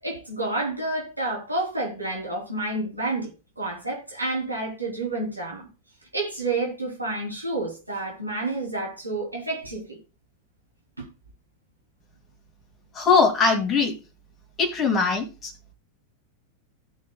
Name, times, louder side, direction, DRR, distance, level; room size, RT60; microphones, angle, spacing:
voice 1, 0.0-3.3 3.6-5.7 6.1-10.0 11.0-11.1, right 2 dB, 85° right, 3.2 m, -29 dB
voice 2, 12.9-13.9 14.6-15.5, left 4 dB, 25° left, 2.5 m, -21 dB
16.5 x 6.3 x 2.2 m
figure-of-eight pair, 90°, 0 cm